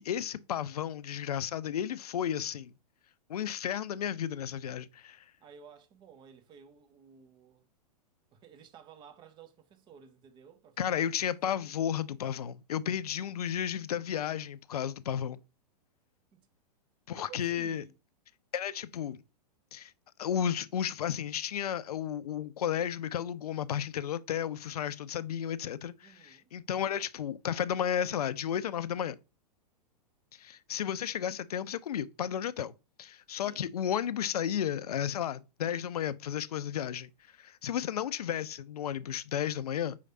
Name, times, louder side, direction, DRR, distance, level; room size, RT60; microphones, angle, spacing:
voice 1, 0.0-2.7 3.3-5.2 10.8-15.4 17.1-17.8 18.5-19.2 19.7-19.9 20.2-29.2 30.3-32.7 33.0-37.1 37.4-40.0, left 9 dB, 65° left, 0.4 m, -33 dB
voice 2, 5.4-7.7 8.3-11.2 11.4-11.7 16.3-16.5 17.1-17.9 26.0-26.5 33.4-33.7, right 7 dB, 20° right, 0.6 m, -54 dB
5.5 x 3.2 x 2.7 m
figure-of-eight pair, 105°, 21 cm